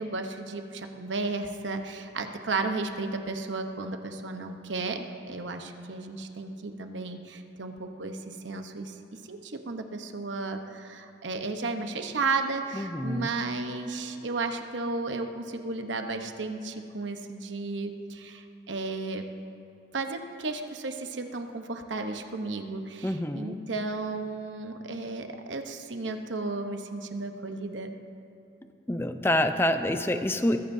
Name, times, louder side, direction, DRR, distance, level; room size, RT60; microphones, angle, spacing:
voice 1, 0.0-9.0 9.3-19.3 19.9-28.0, right 3 dB, 80° right, 5 dB, 0.9 m, -34 dB
voice 2, 12.8-13.3 23.0-23.6 28.9-30.6, left 1 dB, 15° left, 8 dB, 0.5 m, -27 dB
21.0 x 14.5 x 2.7 m, 2.7 s
head